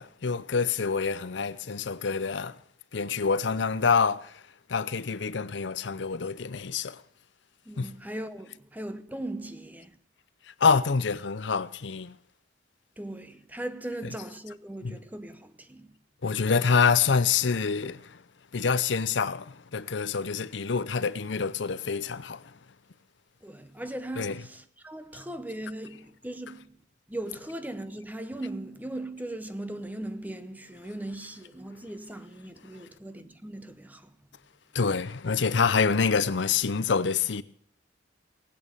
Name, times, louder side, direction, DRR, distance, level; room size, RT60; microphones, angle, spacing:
voice 1, 0.0-2.6 2.9-4.4 4.7-7.0 7.8-7.9 10.5-12.1 14.8-15.0 16.2-18.2 18.5-22.5 24.2-24.4 34.7-37.4, left 5 dB, 70° left, 0.7 m, -26 dB
voice 2, 7.7-10.0 13.0-16.0 23.4-26.8 27.1-34.1, right 1 dB, 10° right, 0.8 m, -39 dB
19.0 x 8.7 x 7.0 m
head